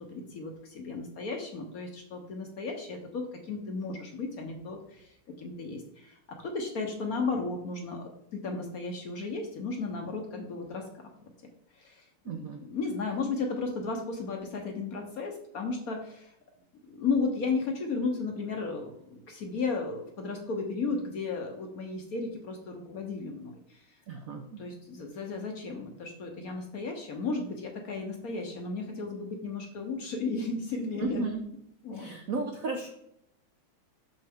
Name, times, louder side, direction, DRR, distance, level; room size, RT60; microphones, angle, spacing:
voice 1, 0.0-11.3 11.7-12.0 12.6-16.3 16.9-24.0 24.6-31.2 31.8-32.1, left 4 dB, 60° left, 3 dB, 1.0 m, -34 dB
voice 2, 12.3-12.6 24.1-24.6 31.0-31.4 31.9-32.9, right 3 dB, 70° right, 4 dB, 0.8 m, -34 dB
6.6 x 6.3 x 3.5 m, 0.74 s
omnidirectional pair, 2.4 m